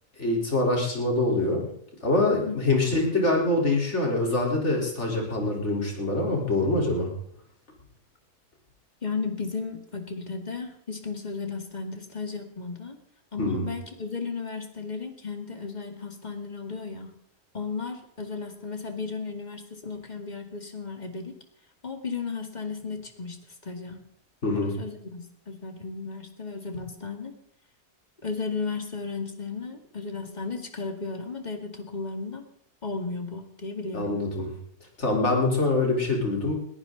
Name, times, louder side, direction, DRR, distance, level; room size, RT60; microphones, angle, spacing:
voice 1, 0.2-1.7 2.0-7.1 13.4-13.7 24.4-24.7 33.9-34.5 35.0-36.5, left 2 dB, 45° left, -1 dB, 4.3 m, -24 dB
voice 2, 9.0-13.0 13.3-17.1 17.5-21.3 21.8-24.0 24.5-27.4 28.2-32.4 32.8-34.2, left 4 dB, 30° left, 5 dB, 2.1 m, -34 dB
21.5 x 14.5 x 3.9 m, 0.67 s
omnidirectional pair, 1.6 m